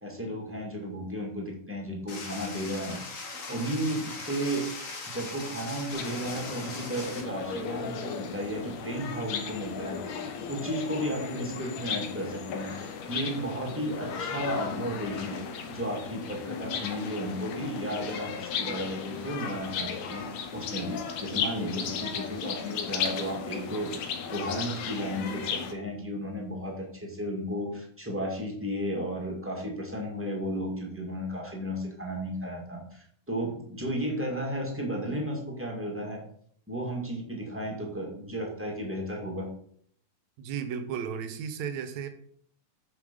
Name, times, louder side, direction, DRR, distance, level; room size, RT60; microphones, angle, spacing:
voice 1, 0.0-3.2 3.5-4.7 5.1-15.4 15.7-36.2 36.7-39.5, equal, 5° right, -1 dB, 1.5 m, -34 dB
sound 1, 2.1-7.2, left 3 dB, 50° left, 0.9 m, -40 dB
sound 2, 5.9-25.7, left 6 dB, 70° left, 2.1 m, -35 dB
voice 2, 40.4-42.1, right 7 dB, 70° right, 9 dB, 2.1 m, -34 dB
8.5 x 5.7 x 5.4 m, 0.62 s
omnidirectional pair, 3.6 m